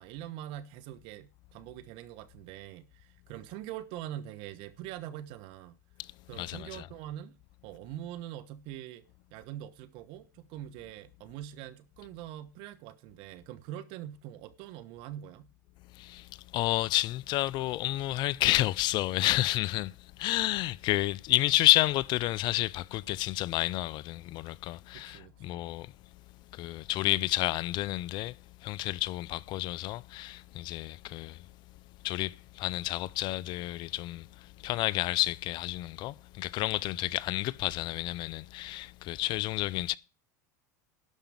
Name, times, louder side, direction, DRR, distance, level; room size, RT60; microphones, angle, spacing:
voice 1, 0.0-5.8 6.3-7.4 7.6-9.0 9.3-15.5 24.9-25.6 36.8-37.1, right 12 dB, 60° right, 1.2 m, -43 dB
voice 2, 6.3-6.9 15.9-25.9 26.5-28.4 28.6-31.5 32.0-40.0, left 17 dB, 50° left, 0.4 m, -30 dB
12.0 x 5.1 x 7.2 m
hypercardioid pair, 95°, 10 cm